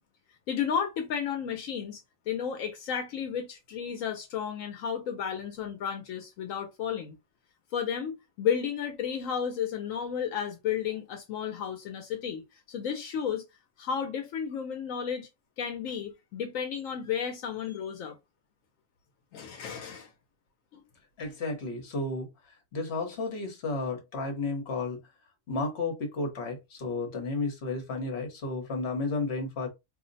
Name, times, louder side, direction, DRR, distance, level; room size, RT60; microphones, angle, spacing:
voice 1, 0.5-2.0 2.3-7.2 7.7-13.4 13.8-15.3 15.6-18.2 19.3-20.1 20.7-20.8, left 8 dB, 80° left, 1.0 m, -33 dB
voice 2, 21.2-25.0 25.5-29.7, left 3 dB, 55° left, 1.2 m, -32 dB
2.6 x 2.1 x 3.9 m
omnidirectional pair, 1.4 m